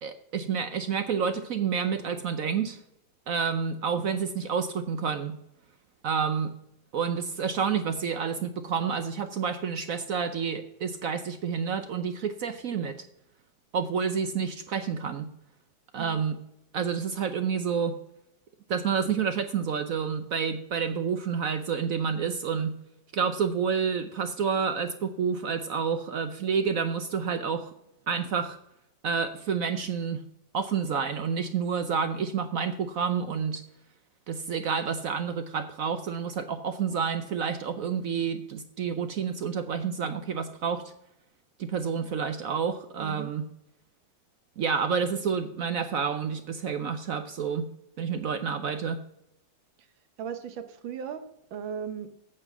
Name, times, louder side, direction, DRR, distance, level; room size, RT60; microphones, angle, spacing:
voice 1, 0.0-2.8 3.3-5.4 6.0-6.5 6.9-13.0 13.7-15.3 15.9-16.4 16.7-18.0 18.7-22.8 23.1-27.7 28.1-28.6 29.0-30.2 30.5-33.6 34.3-40.8 41.6-43.5 44.6-47.7 48.0-49.0, right 6 dB, 60° right, 9 dB, 0.9 m, -29 dB
voice 2, 43.0-43.3 45.1-45.2 50.2-52.1, right 7 dB, 90° right, 9 dB, 1.8 m, -37 dB
8.7 x 6.6 x 7.3 m, 0.80 s
omnidirectional pair, 2.0 m